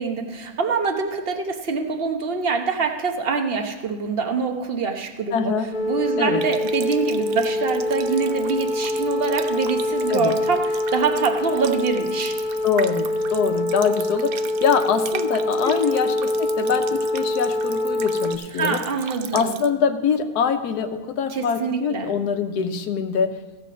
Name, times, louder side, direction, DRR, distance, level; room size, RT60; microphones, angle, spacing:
voice 1, 0.0-5.5 5.9-12.3 18.5-19.5 21.3-22.1, right 5 dB, 45° right, 5 dB, 1.1 m, -25 dB
voice 2, 5.3-5.7 6.2-6.4 10.1-10.3 12.6-18.8 19.3-23.3, left 6 dB, 90° left, 7 dB, 1.3 m, -24 dB
sound 1, 5.7-18.4, left 1 dB, 75° left, 1.5 m, -25 dB
Water tap faucet, 6.4-19.7, right 10 dB, 70° right, 1.0 m, -39 dB
15.5 x 6.7 x 5.0 m, 1.2 s
omnidirectional pair, 1.6 m